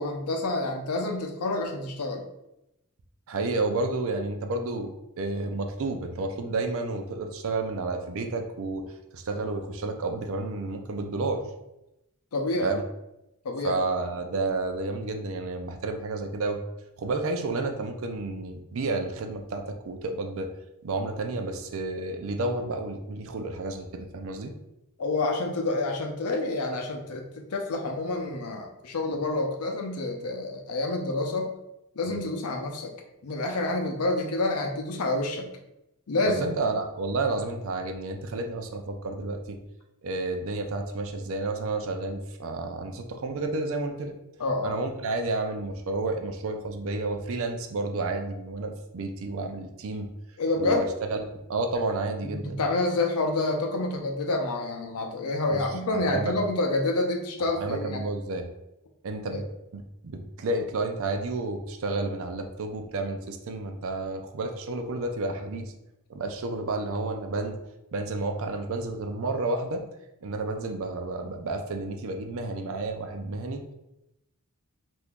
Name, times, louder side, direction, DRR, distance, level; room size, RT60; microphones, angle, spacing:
voice 1, 0.0-2.2 12.3-12.7 13.4-13.8 25.0-31.5 32.0-32.9 33.2-35.5 36.1-36.5 44.4-44.7 50.4-50.9 52.3-58.1 59.3-59.4, left 2 dB, 85° left, 3 dB, 0.6 m, -28 dB
voice 2, 3.3-4.9 5.2-8.9 9.1-11.4 12.6-12.8 13.6-16.6 17.0-20.5 20.8-24.5 32.1-32.2 36.4-39.6 40.0-44.1 44.6-50.1 50.6-50.8 51.1-51.2 51.5-52.6 55.5-55.6 56.1-56.3 57.6-58.5 59.0-59.4 59.7-65.6 66.1-67.6 67.9-69.8 70.2-73.6, right 3 dB, 65° right, 5 dB, 0.4 m, -31 dB
2.8 x 2.6 x 3.5 m, 0.88 s
head